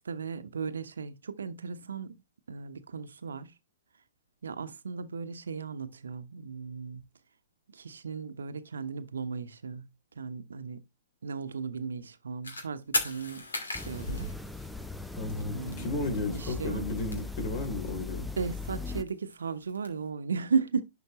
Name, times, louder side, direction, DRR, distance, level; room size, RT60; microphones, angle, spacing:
voice 1, 0.0-2.2 2.5-3.5 4.4-7.0 7.7-9.8 10.2-10.8 11.2-13.5 13.8-14.3 15.5-16.9 18.4-20.8, right 5 dB, 70° right, 1.0 m, -35 dB
sound 1, 12.4-12.6 12.9-15.1 15.4-15.5 15.7-15.8 16.0-16.5 16.8-18.0 18.4-19.9, left 2 dB, 80° left, 2.6 m, -35 dB
sound 2, 13.7-19.0, left 3 dB, ahead, 0.7 m, -39 dB
voice 2, 15.2-18.3, left 2 dB, 45° left, 3.2 m, -33 dB
11.0 x 5.1 x 3.0 m
figure-of-eight pair, 115°, 0 cm